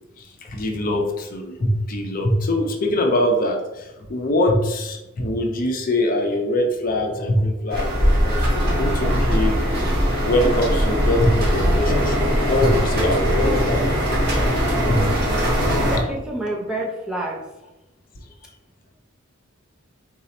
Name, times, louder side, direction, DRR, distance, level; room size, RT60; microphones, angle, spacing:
voice 1, 0.4-9.6 10.2-14.5 14.9-15.1, left 1 dB, 45° left, 2 dB, 0.6 m, -23 dB
sound 1, 7.7-16.0, equal, 50° right, 1.2 m, -20 dB
voice 2, 15.9-17.4, right 1 dB, 5° right, -2 dB, 0.6 m, -28 dB
4.0 x 2.7 x 4.1 m, 0.96 s
head